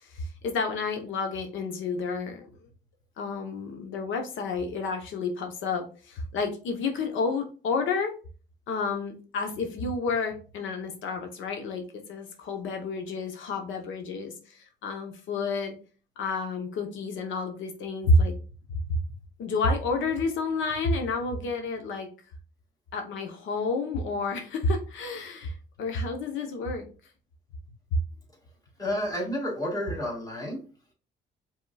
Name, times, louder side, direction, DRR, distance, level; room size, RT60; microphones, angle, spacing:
voice 1, 0.0-2.5 3.2-8.1 8.7-15.7 16.2-18.3 19.4-22.1 22.9-26.9, left 3 dB, 75° left, 4 dB, 0.9 m, -30 dB
voice 2, 28.8-30.6, equal, 20° left, -2 dB, 2.2 m, -30 dB
5.0 x 3.6 x 2.3 m, 0.37 s
cardioid pair, 90°, 20 cm